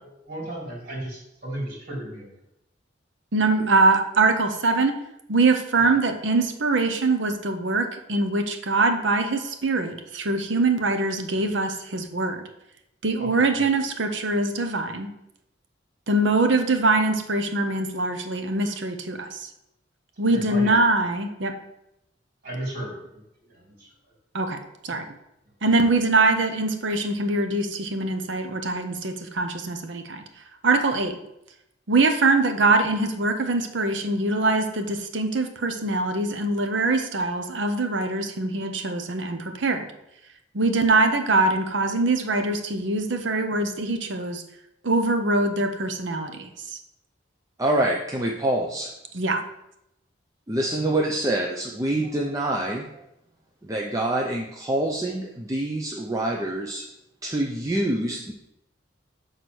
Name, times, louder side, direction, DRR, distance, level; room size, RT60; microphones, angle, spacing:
voice 1, 0.0-2.3 5.8-5.9 13.2-13.3 13.5-13.6 20.3-20.8 22.4-23.9 24.9-25.0, right 1 dB, 55° right, -2 dB, 3.0 m, -35 dB
voice 2, 3.3-4.9 5.3-12.4 13.0-15.1 16.1-19.5 20.2-21.5 24.3-24.6 24.8-25.0 25.6-30.2 30.6-31.1 31.9-39.9 40.5-44.4 44.8-46.5 49.1-49.4, right 3 dB, 70° right, 6 dB, 0.8 m, -23 dB
voice 3, 47.6-48.9 50.5-53.0 53.7-56.8 57.2-58.3, right 1 dB, 20° right, 0 dB, 0.6 m, -26 dB
6.1 x 4.0 x 6.2 m, 0.85 s
head